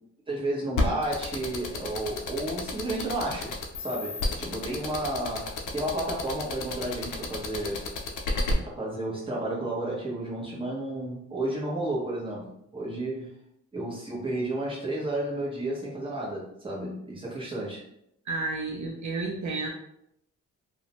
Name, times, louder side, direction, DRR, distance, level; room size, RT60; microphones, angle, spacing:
voice 1, 0.3-7.8 8.8-13.3 13.7-17.8, right 1 dB, 15° right, -5 dB, 0.9 m, -32 dB
sound 1, 0.8-8.5, left 3 dB, 75° left, 0.5 m, -30 dB
voice 2, 18.3-19.7, right 3 dB, 65° right, 1 dB, 0.5 m, -31 dB
2.5 x 2.1 x 2.9 m, 0.77 s
cardioid pair, 100°, 31 cm